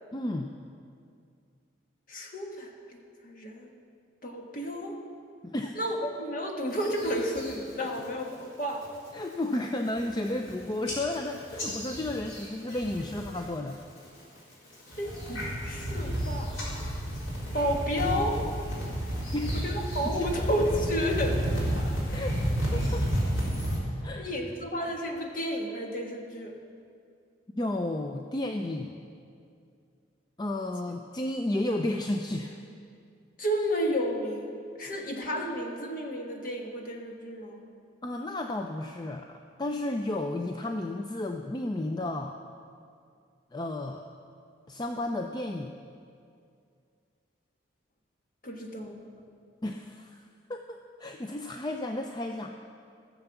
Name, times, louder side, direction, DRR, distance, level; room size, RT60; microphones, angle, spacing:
voice 1, 0.1-0.5 5.4-5.8 7.8-7.9 9.1-13.8 19.3-19.7 20.1-20.5 22.1-22.4 22.7-23.1 24.0-24.3 27.6-29.0 30.4-32.6 34.8-35.0 38.0-42.4 43.5-44.1 44.7-45.7 49.6-50.2 50.5-52.5, left 1 dB, 20° left, 4 dB, 0.4 m, -33 dB
voice 2, 2.1-2.7 3.2-3.7 4.2-5.0 5.8-8.8 15.0-16.6 17.5-18.4 19.5-21.4 22.1-22.2 24.2-26.5 33.4-34.5 34.8-37.6 48.4-48.9, equal, 45° left, 1 dB, 1.5 m, -31 dB
sound 1, 6.7-7.5 7.9-8.3 8.7-9.1 9.5-9.6 9.8-10.5 10.9-13.4 13.7-14.2 14.7-23.8, equal, 75° left, 3.9 m, -31 dB
16.5 x 7.0 x 7.0 m, 2.4 s
head